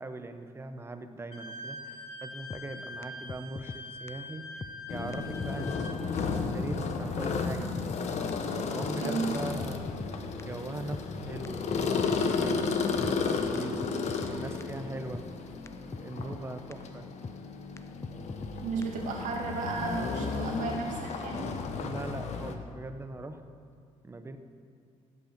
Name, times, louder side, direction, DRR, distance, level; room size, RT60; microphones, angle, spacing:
voice 1, 0.0-4.6 4.9-6.0 6.5-7.9 8.6-9.8 10.4-15.2 15.9-17.1 21.8-23.4 24.0-24.4, right 2 dB, 20° right, 8 dB, 0.8 m, -40 dB
Wind instrument woodwind instrument, 1.3-6.0, left 1 dB, 45° left, 2.0 m, -43 dB
sound 1, 2.5-2.6 3.0-3.1 3.3-3.8 4.1-4.2 4.6-4.7 5.1-5.2 5.4-5.9 6.2-6.3 6.7-6.8 7.2-7.3 7.5-8.0 8.3-8.4 8.8-8.9 9.3-10.1 10.4-10.5 10.9-11.0 11.5-11.6 11.7-12.2 12.5-12.6 13.0-13.1 13.6-13.7 13.8-14.3 14.6-14.7 15.1-15.3 15.7-15.8 15.9-16.4 16.7-16.8 17.2-17.4 17.8-17.9 18.0-18.5 18.8-18.9, left 4 dB, 20° left, 0.4 m, -40 dB
sound 2, 4.9-22.5, left 4 dB, 60° left, 1.0 m, -33 dB
voice 2, 18.6-21.6, right 4 dB, 75° right, 0 dB, 2.2 m, -34 dB
16.0 x 5.5 x 6.6 m, 2.3 s
cardioid pair, 95°, 13 cm